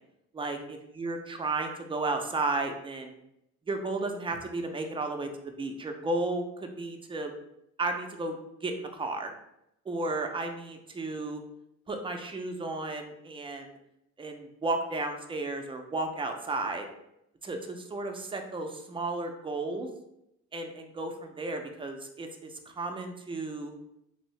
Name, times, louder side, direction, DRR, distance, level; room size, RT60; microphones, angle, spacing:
voice 1, 0.3-3.1 3.7-7.3 7.8-9.3 9.9-11.4 11.9-13.7 14.2-16.8 17.4-19.9 20.5-22.5 22.8-23.7, right 2 dB, 15° right, 4 dB, 0.4 m, -33 dB
2.7 x 2.6 x 3.1 m, 0.81 s
cardioid pair, 90°, 30 cm